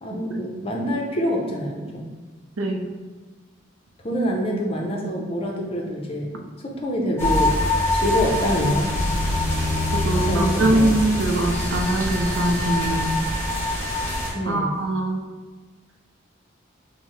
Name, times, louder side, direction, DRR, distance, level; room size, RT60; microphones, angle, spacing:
voice 1, 0.0-2.0 4.0-6.3 6.6-7.5 7.9-8.9 10.0-10.9 14.3-14.7, equal, 30° left, -1 dB, 0.5 m, -25 dB
voice 2, 2.6-2.9 10.1-13.3 14.5-15.2, right 1 dB, 75° right, 3 dB, 0.5 m, -22 dB
sound 1, 7.2-14.3, left 1 dB, 10° left, 0.9 m, -24 dB
5.4 x 2.1 x 3.1 m, 1.3 s
head